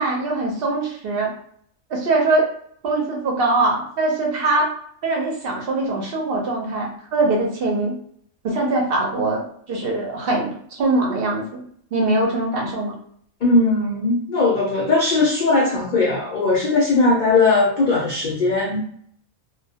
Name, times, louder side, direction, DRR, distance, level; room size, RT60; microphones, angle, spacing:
voice 1, 0.0-1.3 1.9-2.5 2.8-4.7 5.0-7.9 8.4-9.4 9.7-11.6 11.9-12.9, right 2 dB, 60° right, -1 dB, 0.6 m, -22 dB
voice 2, 13.4-18.8, left 3 dB, 80° left, -4 dB, 0.4 m, -19 dB
2.2 x 2.1 x 2.7 m, 0.62 s
omnidirectional pair, 1.5 m